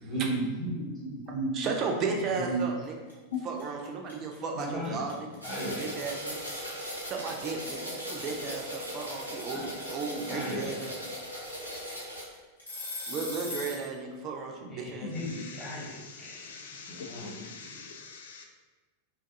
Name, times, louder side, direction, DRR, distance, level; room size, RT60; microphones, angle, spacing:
voice 1, 0.0-1.5 2.3-2.6 4.5-5.1 5.4-5.9 9.5-9.6 10.3-10.7 14.6-16.4 16.7-17.3 17.6-17.9, right 1 dB, 25° left, -9 dB, 1.0 m, -35 dB
voice 2, 1.5-3.0 3.4-5.3 5.8-6.4 7.1-11.0 13.1-15.2, right 4 dB, 35° right, 1 dB, 0.4 m, -34 dB
sound 1, 2.6-2.8 3.1-13.9, left 2 dB, 80° left, 0.8 m, -40 dB
sound 2, 5.4-12.2, equal, 85° right, 0.6 m, -38 dB
voice 3, 15.0-18.4, left 4 dB, 60° left, 3 dB, 0.3 m, -45 dB
2.5 x 2.3 x 2.5 m, 1.3 s
figure-of-eight pair, 90°, 0 cm